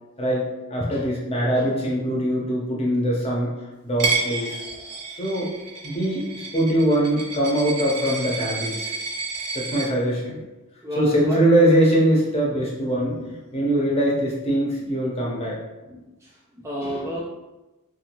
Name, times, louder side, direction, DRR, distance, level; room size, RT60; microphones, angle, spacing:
voice 1, 0.2-3.5 3.8-4.6 5.2-5.5 5.8-6.3 6.5-8.9 9.5-10.4 10.9-13.1 13.5-15.6 16.8-17.2, right 1 dB, 25° left, -4 dB, 0.7 m, -22 dB
Coin (dropping), 4.0-9.9, right 3 dB, 90° right, 0.6 m, -30 dB
voice 2, 10.8-11.4 12.5-13.9 15.9-17.2, equal, 15° right, -5 dB, 0.3 m, -34 dB
2.5 x 2.4 x 2.9 m, 1.1 s
head